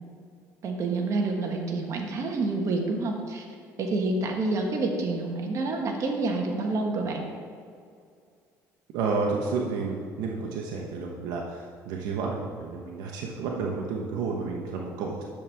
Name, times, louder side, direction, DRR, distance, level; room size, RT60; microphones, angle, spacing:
voice 1, 0.6-3.4 3.8-7.2, right 3 dB, 50° right, 1 dB, 1.5 m, -28 dB
voice 2, 8.9-15.2, right 4 dB, 80° right, -1 dB, 1.1 m, -31 dB
10.5 x 7.1 x 3.5 m, 2.2 s
cardioid pair, 95°, 7 cm